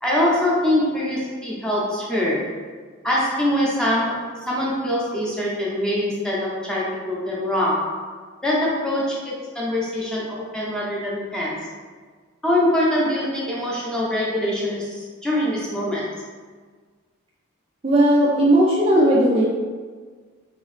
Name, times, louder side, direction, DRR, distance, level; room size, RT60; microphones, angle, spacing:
voice 1, 0.0-2.6 3.0-8.1 8.4-11.7 12.4-16.1, left 1 dB, 5° left, -6 dB, 0.7 m, -23 dB
voice 2, 17.8-19.4, right 1 dB, 25° right, -4 dB, 0.4 m, -16 dB
3.6 x 2.9 x 3.2 m, 1.5 s
head